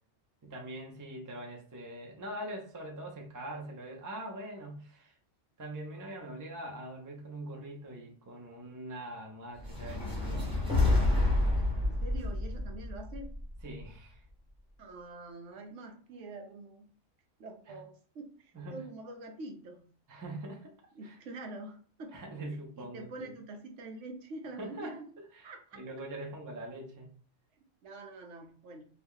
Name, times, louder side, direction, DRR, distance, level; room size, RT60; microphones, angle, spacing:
voice 1, 0.4-5.2 5.6-10.4 13.6-14.2 17.7-17.8 18.5-18.8 20.1-20.7 21.0-21.2 22.1-23.3 24.6-27.1, right 1 dB, 20° right, 0 dB, 0.5 m, -43 dB
sound 1, 9.6-13.8, left 2 dB, 5° right, 1.1 m, -29 dB
voice 2, 11.8-13.3 14.8-16.9 17.4-19.9 20.9-22.1 22.7-25.1 25.4-25.8 27.8-28.8, right 2 dB, 75° right, 4 dB, 1.0 m, -45 dB
2.8 x 2.3 x 3.5 m, 0.44 s
omnidirectional pair, 1.3 m